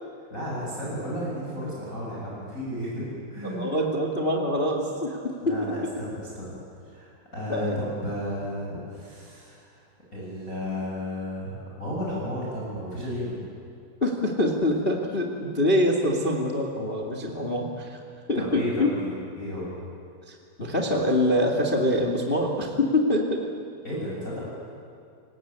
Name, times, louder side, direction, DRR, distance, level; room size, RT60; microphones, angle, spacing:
voice 1, 0.3-3.7 5.4-9.8 10.1-13.5 18.3-19.7 23.8-24.4, equal, 15° left, -5 dB, 7.5 m, -33 dB
voice 2, 3.4-5.9 7.5-7.8 14.0-18.0 18.3-18.9 20.3-23.4, left 1 dB, 70° left, 1 dB, 0.5 m, -25 dB
29.5 x 19.0 x 8.9 m, 2.4 s
omnidirectional pair, 5.3 m